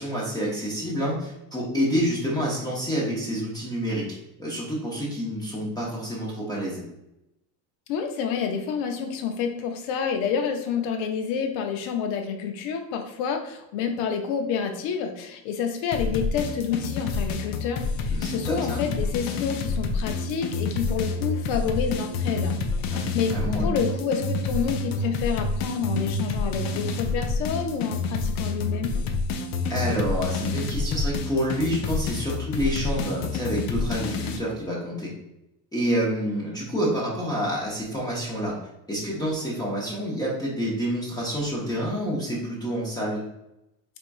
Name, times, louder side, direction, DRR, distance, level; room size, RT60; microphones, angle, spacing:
voice 1, 0.0-4.1 4.4-6.8 18.1-18.8 22.9-23.7 29.7-35.1 35.7-38.5 38.9-43.2, equal, 10° left, -5 dB, 0.7 m, -28 dB
voice 2, 7.9-23.3 23.6-29.0, left 6 dB, 75° left, 4 dB, 0.8 m, -29 dB
sound 1, 15.9-34.4, left 3 dB, 50° left, 0.5 m, -28 dB
4.4 x 3.5 x 2.5 m, 0.87 s
cardioid pair, 160°, 47 cm